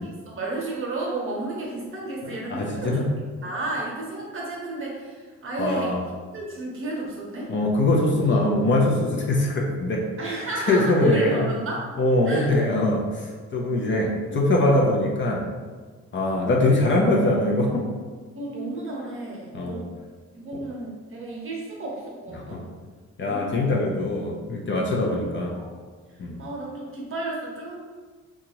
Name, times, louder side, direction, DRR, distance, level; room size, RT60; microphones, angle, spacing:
voice 1, 0.0-3.1 3.4-6.0 6.3-7.5 8.2-8.4 10.2-11.9 12.2-12.5 13.9-14.9 18.3-19.9 20.3-22.6 23.2-23.8 25.0-25.7 26.1-27.7, right 2 dB, 45° right, -3 dB, 0.9 m, -33 dB
voice 2, 2.5-3.1 5.6-6.0 7.5-10.0 10.7-11.5 12.0-15.5 16.1-17.9 19.5-19.8 20.5-20.6 22.3-22.6 23.2-25.5 26.2-26.4, left 2 dB, 40° left, -1 dB, 0.6 m, -22 dB
2.7 x 2.4 x 3.0 m, 1.5 s
cardioid pair, 90°, 30 cm